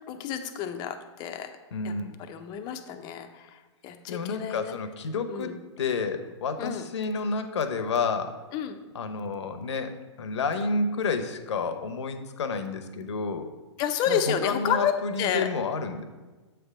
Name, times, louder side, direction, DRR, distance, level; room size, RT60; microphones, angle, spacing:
voice 1, 0.1-1.5 1.8-1.9 2.3-4.8 5.3-5.5 6.6-6.8 8.5-8.8 13.8-15.5, left 8 dB, 30° left, 7 dB, 0.5 m, -30 dB
voice 2, 1.7-2.1 4.1-8.3 8.9-9.9 10.2-13.5 14.1-16.0, left 4 dB, 70° left, 9 dB, 0.8 m, -30 dB
7.7 x 3.4 x 5.0 m, 1.3 s
hypercardioid pair, 130°, 15 cm